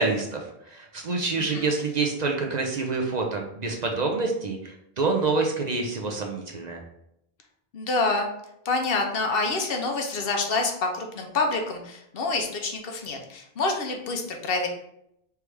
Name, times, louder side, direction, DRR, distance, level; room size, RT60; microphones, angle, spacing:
voice 1, 0.0-6.8, right 3 dB, 50° right, 1 dB, 0.7 m, -27 dB
voice 2, 7.7-8.3 8.6-14.7, left 3 dB, 70° left, 3 dB, 0.9 m, -27 dB
3.4 x 3.2 x 4.7 m, 0.77 s
omnidirectional pair, 1.0 m